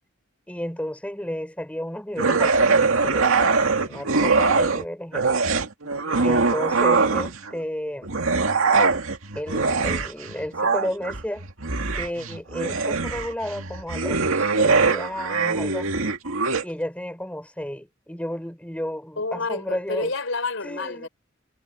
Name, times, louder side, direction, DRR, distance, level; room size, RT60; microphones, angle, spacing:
voice 1, 0.5-3.4 3.8-5.3 6.2-8.1 9.3-11.4 11.9-16.2 16.6-20.1 20.6-21.1, equal, 5° left, 4.8 m, -32 dB
sound 1, 2.2-4.8 5.1-7.5 8.0-16.6, right 4 dB, 85° right, 2.1 m, -22 dB
voice 2, 5.8-6.3 19.2-21.1, left 3 dB, 70° left, 4.9 m, -30 dB
head